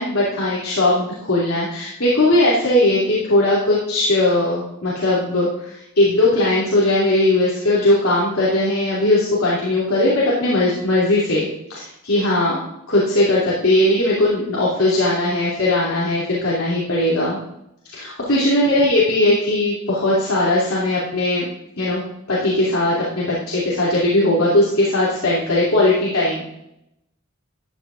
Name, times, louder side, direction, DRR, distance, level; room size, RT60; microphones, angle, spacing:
voice 1, 0.0-12.6 12.9-17.4 17.9-21.4 21.8-22.0 22.3-26.5, left 1 dB, 70° left, -7 dB, 3.0 m, -19 dB
13.5 x 9.9 x 2.6 m, 0.81 s
head